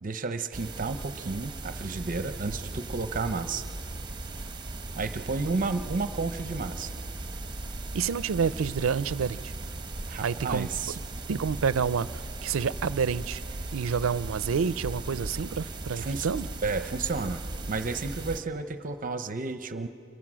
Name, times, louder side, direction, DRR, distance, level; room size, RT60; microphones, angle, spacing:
voice 1, 0.0-3.6 5.0-6.9 10.1-11.0 16.0-16.3 16.6-17.4 17.7-19.9, right 4 dB, 40° right, 10 dB, 0.7 m, -32 dB
sound 1, 0.5-18.4, right 2 dB, 20° right, 1.0 m, -38 dB
voice 2, 7.9-9.5 10.2-10.7 11.3-13.4 13.7-16.5, right 6 dB, 85° right, 17 dB, 0.4 m, -28 dB
28.0 x 22.0 x 6.2 m, 2.8 s
head